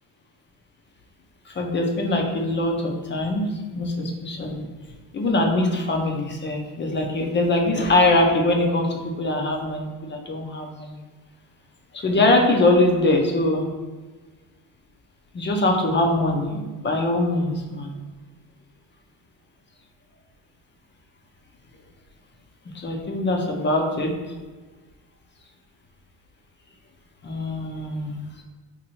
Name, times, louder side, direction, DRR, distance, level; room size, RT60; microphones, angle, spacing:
voice 1, 1.6-3.5 3.7-4.6 5.1-8.9 9.1-11.0 11.9-13.6 15.3-18.0 22.8-24.2 27.2-28.2, left 2 dB, 25° left, 1 dB, 0.6 m, -22 dB
4.1 x 2.6 x 2.9 m, 1.3 s
supercardioid pair, 90°, 41 cm